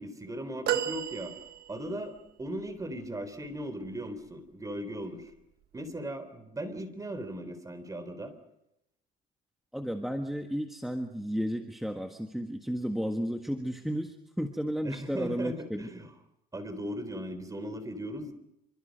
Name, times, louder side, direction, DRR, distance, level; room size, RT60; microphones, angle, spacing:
voice 1, 0.0-1.3 1.7-5.3 5.7-8.3 14.8-16.1 16.5-18.3, right 1 dB, 20° right, 11 dB, 3.6 m, -38 dB
sound 1, 0.7-2.1 2.8-2.9, right 10 dB, 70° right, 1.3 m, -32 dB
voice 2, 9.7-15.9, equal, ahead, 4 dB, 1.6 m, -33 dB
27.5 x 25.0 x 5.3 m, 0.82 s
cardioid pair, 110°, 17 cm